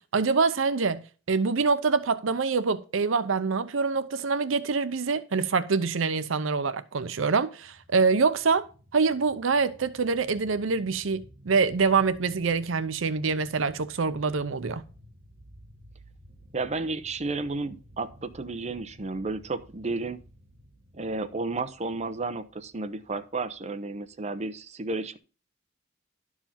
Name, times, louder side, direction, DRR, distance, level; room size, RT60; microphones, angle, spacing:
voice 1, 0.1-8.6 8.9-14.9, right 4 dB, 75° right, 0.6 m, -25 dB
sound 1, 7.6-24.6, equal, 55° right, 1.8 m, -54 dB
voice 2, 16.5-20.2 20.9-25.2, right 3 dB, 35° right, 0.8 m, -32 dB
12.0 x 4.8 x 5.7 m
head